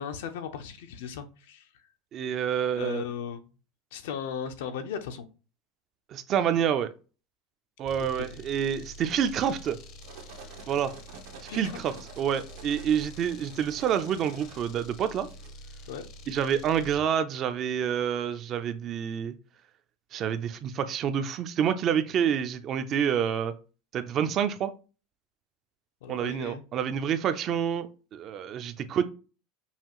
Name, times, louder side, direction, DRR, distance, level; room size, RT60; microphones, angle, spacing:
voice 1, 0.0-1.9 2.8-3.4 3.9-5.3 8.0-8.2 11.5-11.8 15.9-16.1 26.0-26.7, left 7 dB, 85° left, 0.7 m, -37 dB
voice 2, 2.1-3.0 6.1-6.9 7.8-9.8 10.7-10.9 11.5-15.3 16.3-19.3 20.1-23.5 23.9-24.7 26.1-29.0, right 8 dB, 35° right, 0.5 m, -28 dB
sound 1, 7.9-17.1, equal, 45° left, 0.6 m, -47 dB
sound 2, 9.7-15.5, right 5 dB, 75° right, 1.0 m, -49 dB
5.6 x 2.4 x 3.0 m
supercardioid pair, 145°, 0 cm